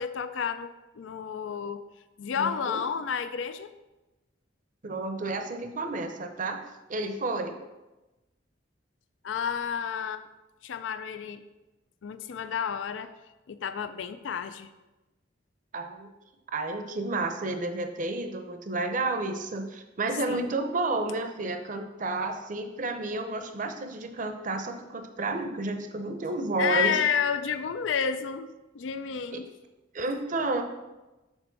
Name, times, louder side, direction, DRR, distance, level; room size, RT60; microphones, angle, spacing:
voice 1, 0.0-1.8 2.2-3.7 9.2-10.2 10.6-11.4 12.0-13.1 13.5-14.7 20.3-20.4 26.6-29.5, left 7 dB, 90° left, 11 dB, 0.4 m, -30 dB
voice 2, 2.4-2.8 4.8-6.6 6.9-7.6 15.7-16.1 16.5-27.0 29.3-29.4 29.9-30.6, right 2 dB, 45° right, 6 dB, 0.7 m, -31 dB
7.2 x 4.3 x 5.9 m, 1.1 s
head